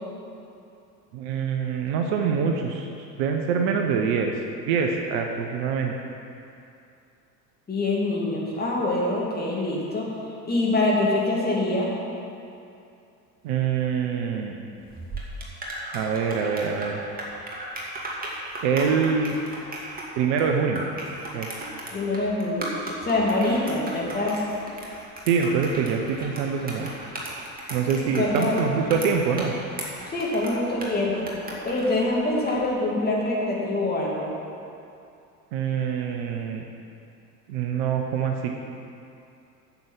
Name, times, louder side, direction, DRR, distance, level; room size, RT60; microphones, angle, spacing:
voice 1, 1.1-4.3 4.6-5.9 13.4-14.6 15.9-17.0 18.6-19.3 20.2-20.8 21.3-21.5 25.3-26.9 27.7-29.5 35.5-36.6 37.5-38.6, right 6 dB, 45° right, 3 dB, 1.0 m, -25 dB
voice 2, 7.7-10.1 10.5-11.9 21.9-22.6 23.0-24.4 28.1-28.6 30.1-31.3 31.6-34.3, left 2 dB, 20° left, -4 dB, 2.7 m, -25 dB
sound 1, 14.9-32.6, right 1 dB, 15° right, 2.2 m, -36 dB
9.3 x 7.1 x 7.4 m, 2.6 s
figure-of-eight pair, 75°, 50 cm